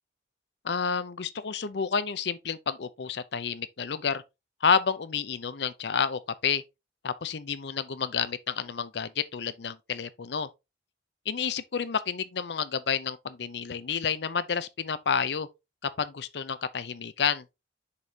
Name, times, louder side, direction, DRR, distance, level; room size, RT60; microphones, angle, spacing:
voice 1, 0.6-4.2 4.6-6.6 7.0-10.5 11.3-15.5 15.8-17.4, left 6 dB, 70° left, 0.6 m, -30 dB
6.7 x 5.3 x 2.8 m
head